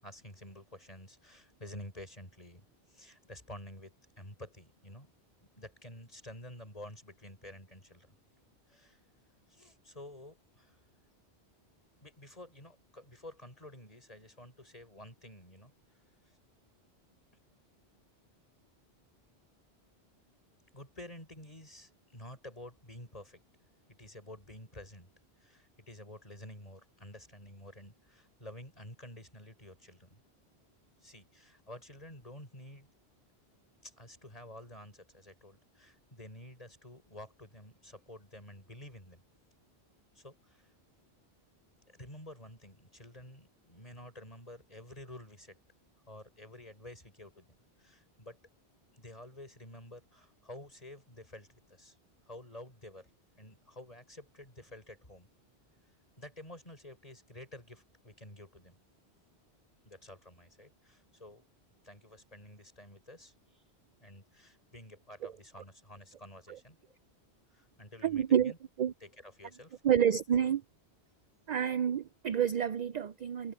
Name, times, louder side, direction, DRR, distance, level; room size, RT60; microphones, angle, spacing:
voice 1, 0.0-5.1 5.4-8.1 8.7-9.0 9.5-10.8 12.0-15.7 20.7-23.4 24.0-25.1 25.4-30.2 31.0-32.9 33.8-39.2 40.1-40.7 41.9-45.6 46.1-47.5 47.8-48.4 48.9-51.9 52.3-53.1 53.4-55.3 56.2-58.8 59.8-61.4 61.8-63.6 64.0-66.9 67.5-68.6 69.0-69.8, left 1 dB, 35° left, 6.8 m, -50 dB
voice 2, 68.0-68.9 69.8-70.6 71.5-73.5, right 9 dB, 55° right, 0.5 m, -29 dB
omnidirectional pair, 1.1 m